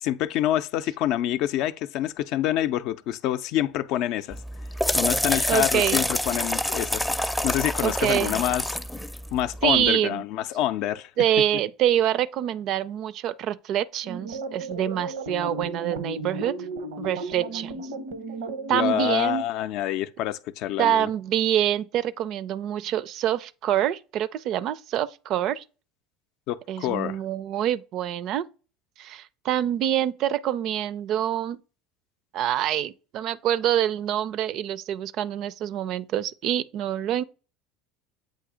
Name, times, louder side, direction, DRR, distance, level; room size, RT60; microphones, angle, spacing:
voice 1, 0.0-4.4 5.0-7.1 7.4-8.6 9.3-11.1 18.7-21.1 26.5-27.2, left 12 dB, 65° left, 0.4 m, -26 dB
sound 1, 4.3-9.9, equal, 5° left, 0.5 m, -27 dB
voice 2, 5.5-6.0 7.8-8.4 9.6-10.2 11.2-16.5 17.0-17.9 18.7-19.4 20.8-25.6 26.7-28.5 29.0-31.6 32.3-37.2, right 11 dB, 55° right, 0.4 m, -26 dB
sound 2, 14.0-19.2, right 3 dB, 90° right, 0.8 m, -34 dB
7.6 x 2.7 x 4.9 m
supercardioid pair, 90°, 0 cm